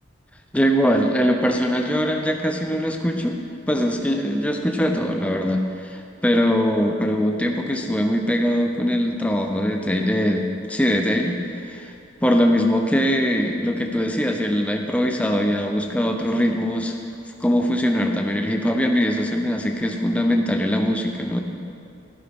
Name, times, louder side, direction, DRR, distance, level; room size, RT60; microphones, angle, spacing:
voice 1, 0.5-3.4 3.7-11.4 11.6-11.9 12.2-16.9 17.4-21.4, equal, 5° left, 3 dB, 0.5 m, -22 dB
11.5 x 9.9 x 3.6 m, 2.5 s
head